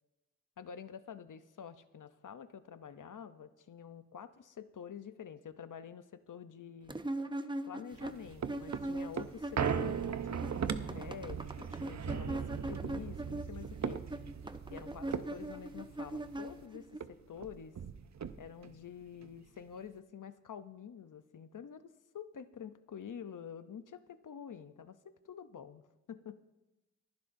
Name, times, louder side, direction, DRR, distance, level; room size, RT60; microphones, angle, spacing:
voice 1, 0.6-7.0 7.7-14.1 14.7-17.7 18.4-21.9 22.1-25.0 25.2-25.8 26.1-26.4, left 8 dB, 80° left, 12 dB, 0.7 m, -48 dB
sound 1, 6.9-10.1 10.3-17.0, right 1 dB, 15° right, 0.6 m, -41 dB
sound 2, 7.9-16.6 17.0-17.1 17.4-18.7 19.2-19.3, right 7 dB, 60° right, 0.6 m, -39 dB
29.5 x 10.5 x 2.6 m, 1.0 s
wide cardioid pair, 85°, 31 cm